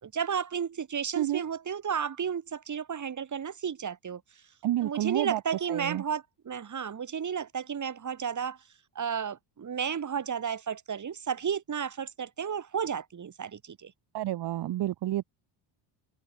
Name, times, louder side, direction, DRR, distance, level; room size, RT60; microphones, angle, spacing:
voice 1, 0.0-4.4 4.8-8.6 8.9-13.9, right 7 dB, 40° right, 5.1 m, -33 dB
voice 2, 4.6-5.4 5.7-6.0 14.1-15.2, right 14 dB, 60° right, 1.7 m, -29 dB
cardioid pair, 95°, 46 cm